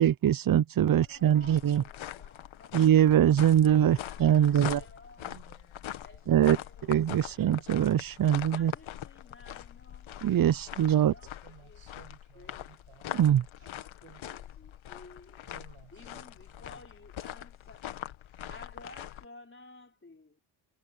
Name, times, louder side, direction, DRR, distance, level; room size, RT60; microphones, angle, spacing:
voice 1, 0.0-1.8 2.7-4.8 6.3-6.6 6.9-8.7 10.2-11.1 13.1-13.4, right 10 dB, 45° right, 0.7 m, -23 dB
voice 2, 0.8-2.9 3.5-5.3 6.0-7.6 8.5-10.2 10.7-11.3 11.6-12.8 13.6-15.4 15.9-17.9 18.5-20.4, left 2 dB, 25° left, 4.2 m, -54 dB
sound 1, 0.9-19.2, left 12 dB, 75° left, 1.8 m, -43 dB
voice 3, 4.3-6.2 7.2-7.3 11.4-13.3 14.0-14.2 15.4-16.3 16.5-16.8 18.4-18.5, right 10 dB, 75° right, 7.7 m, -57 dB
supercardioid pair, 60°, 48 cm